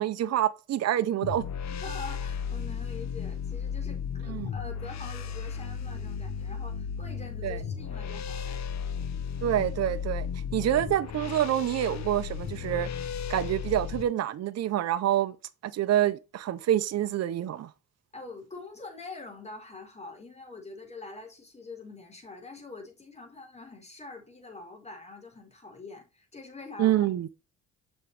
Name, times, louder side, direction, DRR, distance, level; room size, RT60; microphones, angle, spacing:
voice 1, 0.0-1.4 4.3-4.5 7.4-7.6 9.4-10.3 10.5-12.9 13.3-15.4 15.6-17.7 26.8-27.3, right 12 dB, 60° right, 0.7 m, -27 dB
sound 1, 1.2-14.0, left 7 dB, 65° left, 1.0 m, -35 dB
voice 2, 1.8-8.6 10.6-10.7 18.1-27.1, left 3 dB, 20° left, 4.3 m, -45 dB
7.3 x 6.4 x 3.4 m
cardioid pair, 90°, 30 cm